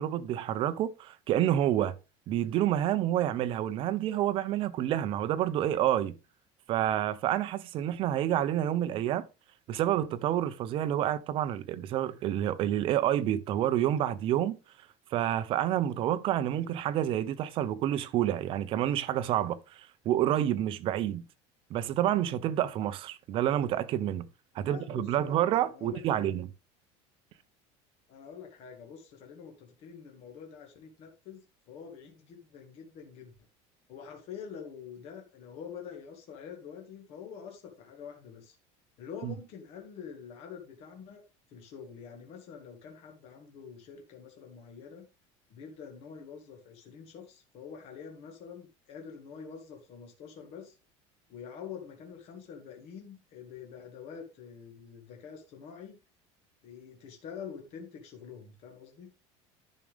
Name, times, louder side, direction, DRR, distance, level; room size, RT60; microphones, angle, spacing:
voice 1, 0.0-1.9 2.3-6.1 6.7-9.2 9.7-14.6 15.1-21.2 21.7-24.3 24.5-26.5 39.2-39.3, right 11 dB, 35° right, 0.7 m, -28 dB
voice 2, 24.5-25.4 25.7-26.4 28.1-33.3 33.9-38.6 39.0-41.2 41.5-45.1 45.5-50.8 51.3-56.0 56.6-59.1, left 7 dB, 45° left, 2.0 m, -46 dB
10.5 x 6.3 x 3.4 m
cardioid pair, 170°, 15 cm